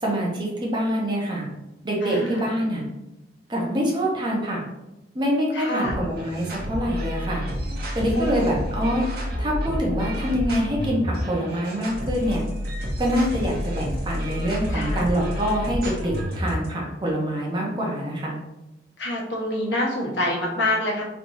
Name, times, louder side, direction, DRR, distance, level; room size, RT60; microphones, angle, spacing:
voice 1, 0.0-1.5 1.8-2.8 3.5-4.6 5.1-7.4 7.9-9.0 9.4-12.4 13.0-18.4, equal, 25° right, -3 dB, 0.9 m, -25 dB
voice 2, 2.0-2.5 5.5-6.0 8.1-8.4 14.7-15.1 19.0-21.0, left 1 dB, 75° left, -3 dB, 1.1 m, -26 dB
sound 1, 5.8-16.7, equal, 60° right, 1.1 m, -29 dB
4.6 x 3.4 x 2.7 m, 0.96 s
head